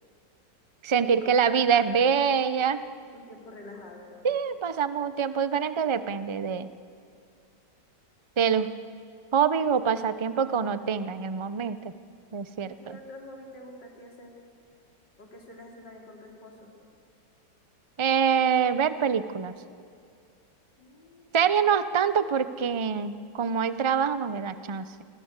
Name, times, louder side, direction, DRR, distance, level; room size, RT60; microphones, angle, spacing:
voice 1, 0.8-2.8 4.2-6.7 8.4-8.7 9.3-11.9 12.3-12.7 18.0-19.5 21.3-24.9, right 7 dB, 45° right, 12 dB, 0.3 m, -25 dB
voice 2, 1.5-2.0 3.1-4.1 12.6-14.4 15.2-16.7 20.8-21.5, left 1 dB, 80° left, 0 dB, 4.5 m, -46 dB
27.0 x 24.0 x 8.2 m, 2.3 s
omnidirectional pair, 1.9 m